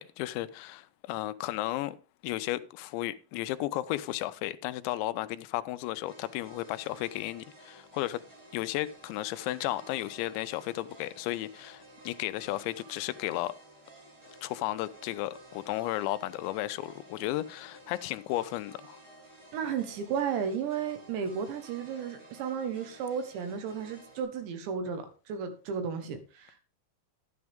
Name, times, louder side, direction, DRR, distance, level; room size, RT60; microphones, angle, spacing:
voice 1, 0.0-2.0 2.2-8.2 8.5-13.5 14.4-19.0, left 15 dB, 85° left, 2.9 m, -34 dB
sound 1, 6.0-24.2, right 1 dB, 35° right, 8.7 m, -53 dB
voice 2, 19.5-26.6, right 7 dB, 80° right, 3.5 m, -34 dB
12.0 x 9.5 x 3.5 m
omnidirectional pair, 5.1 m